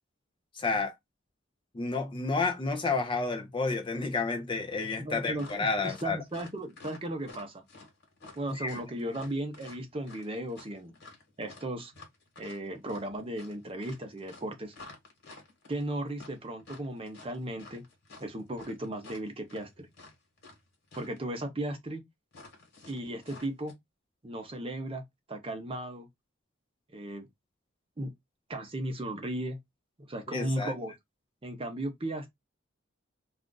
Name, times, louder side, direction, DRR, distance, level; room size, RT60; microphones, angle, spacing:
voice 1, 0.5-0.9 1.7-6.2 8.5-8.8 30.3-30.7, left 3 dB, 25° left, 0.5 m, -30 dB
voice 2, 5.0-5.5 5.8-7.6 8.4-11.0 11.4-11.9 12.4-14.7 15.7-17.8 18.2-19.9 20.9-22.0 22.9-23.7 24.2-25.0 25.3-26.1 26.9-27.3 28.0-28.1 28.5-29.6 30.0-30.9 31.4-32.3, right 1 dB, 25° right, 0.7 m, -36 dB
sound 1, 5.3-20.6 20.9-21.2 22.3-23.7, left 3 dB, 55° left, 1.3 m, -51 dB
2.5 x 2.4 x 3.7 m
head